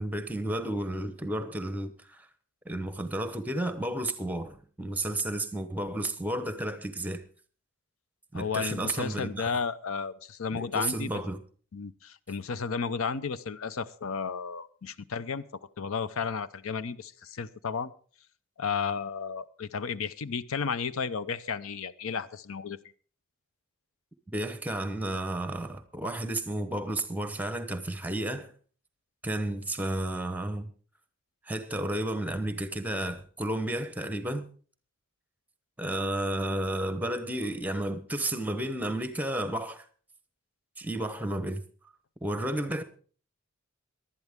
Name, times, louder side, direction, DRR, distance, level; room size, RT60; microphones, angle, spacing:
voice 1, 0.0-2.3 2.6-7.2 8.3-9.5 10.5-11.4 24.3-28.5 29.2-30.7 31.4-34.5 35.8-39.9 40.8-41.6 42.2-42.8, right 1 dB, 5° right, 0.9 m, -32 dB
voice 2, 8.3-11.2 11.7-15.4 15.8-17.9 18.6-22.8, left 5 dB, 80° left, 0.6 m, -33 dB
19.0 x 11.5 x 3.6 m
head